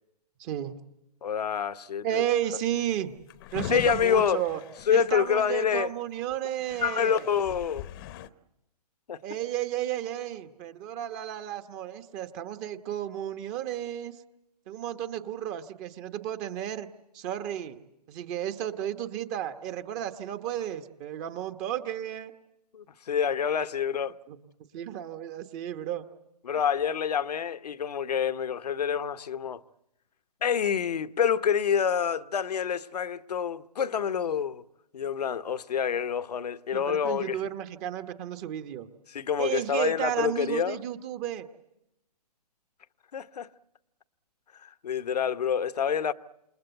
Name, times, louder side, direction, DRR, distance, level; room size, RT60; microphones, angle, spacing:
voice 1, 0.4-0.8 2.0-3.1 3.5-4.6 4.9-7.2 9.2-14.1 14.7-16.9 17.1-17.8 18.1-22.3 24.3-24.4 24.7-26.1 36.7-38.9 39.4-41.5, right 11 dB, 25° right, 1.2 m, -33 dB
voice 2, 1.2-2.2 3.7-4.4 4.9-5.9 6.8-7.9 9.1-9.2 22.7-24.1 26.4-29.6 30.4-34.6 34.9-37.4 39.1-40.8 43.1-43.5 44.5-46.1, left 8 dB, 70° left, 1.0 m, -27 dB
Drawer open or close, 3.0-5.8 6.3-6.4 6.6-8.3, left 11 dB, 35° left, 0.9 m, -41 dB
28.5 x 21.0 x 8.1 m
hypercardioid pair, 140°, 21 cm